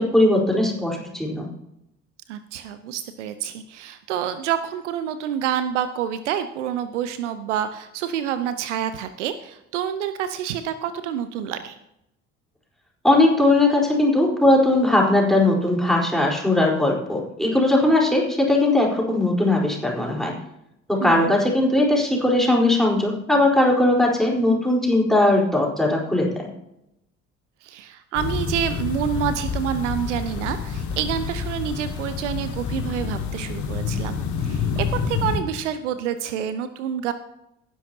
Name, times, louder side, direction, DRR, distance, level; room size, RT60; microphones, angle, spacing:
voice 1, 0.0-1.5 13.0-20.3 20.9-26.5, left 1 dB, ahead, -2 dB, 4.2 m, -19 dB
voice 2, 2.3-11.8 21.0-21.3 27.6-37.1, right 9 dB, 70° right, 12 dB, 0.8 m, -28 dB
sound 1, 28.2-35.4, left 5 dB, 50° left, 2.0 m, -28 dB
18.0 x 10.0 x 2.9 m, 0.82 s
figure-of-eight pair, 50°, 37 cm